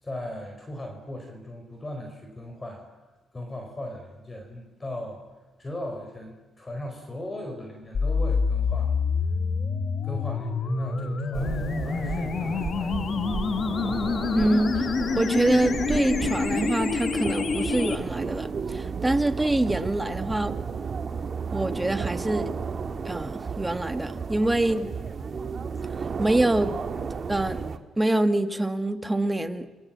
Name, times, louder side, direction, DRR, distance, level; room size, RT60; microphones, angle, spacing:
voice 1, 0.0-2.9 3.3-5.2 5.6-8.9 10.0-13.5, left 1 dB, 25° left, 3 dB, 4.7 m, -38 dB
sound 1, 7.9-18.0, left 5 dB, 55° left, 2.0 m, -27 dB
sound 2, 11.3-27.8, right 5 dB, 45° right, 1.8 m, -33 dB
voice 2, 14.3-14.8 15.2-20.6 21.5-22.5 23.0-24.9 26.2-26.7 27.3-27.6 28.0-29.7, right 1 dB, 10° right, 9 dB, 1.8 m, -25 dB
30.0 x 23.0 x 7.5 m, 1.1 s
cardioid pair, 90°, 0 cm